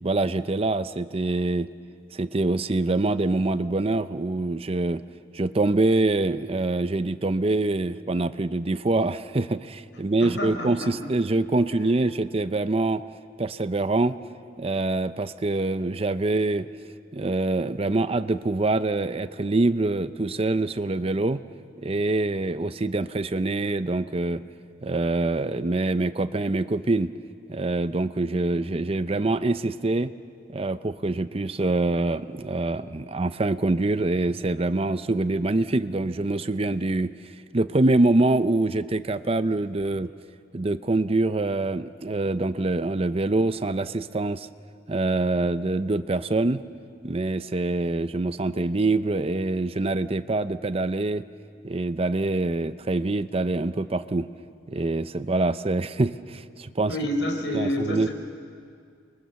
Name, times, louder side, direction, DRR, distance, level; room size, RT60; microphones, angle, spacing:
voice 1, 0.0-1.7 2.1-5.0 5.3-13.0 13.4-14.2 14.6-16.7 17.1-21.4 21.8-24.4 24.8-27.1 27.5-30.1 30.5-37.1 37.5-40.1 40.5-44.5 44.9-46.6 47.0-51.2 51.6-54.3 54.7-56.9 57.5-58.1, right 2 dB, 35° right, 13 dB, 0.6 m, -25 dB
voice 2, 10.2-10.9 56.9-58.1, left 1 dB, 80° left, 3 dB, 4.6 m, -28 dB
30.0 x 23.5 x 7.0 m, 2.2 s
head